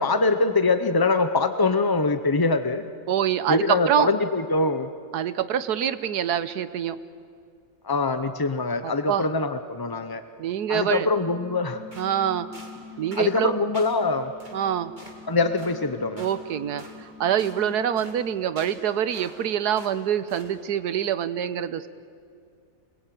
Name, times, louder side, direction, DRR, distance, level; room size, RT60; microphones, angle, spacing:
voice 1, 0.0-2.8 3.5-4.9 7.8-10.2 10.7-11.9 13.1-14.3 15.3-16.2, left 3 dB, 30° left, 9 dB, 0.4 m, -23 dB
voice 2, 3.1-4.1 5.1-7.0 8.8-9.2 10.4-11.1 12.0-12.5 13.0-13.6 14.5-14.9 16.2-16.8 17.2-21.9, right 9 dB, 90° right, 13 dB, 1.5 m, -25 dB
sound 1, 11.0-18.2, left 4 dB, 70° left, 4.1 m, -45 dB
sound 2, 11.9-12.1 12.5-12.8 13.1-13.3 13.7-14.0 14.4-14.6 15.0-15.2 15.6-15.8 16.2-16.4 16.8-17.0 17.4-17.6 18.0-18.2 18.6-19.5 19.8-20.0 20.3-20.5, right 1 dB, 30° right, 3.1 m, -46 dB
27.5 x 21.0 x 9.3 m, 2.3 s
omnidirectional pair, 1.7 m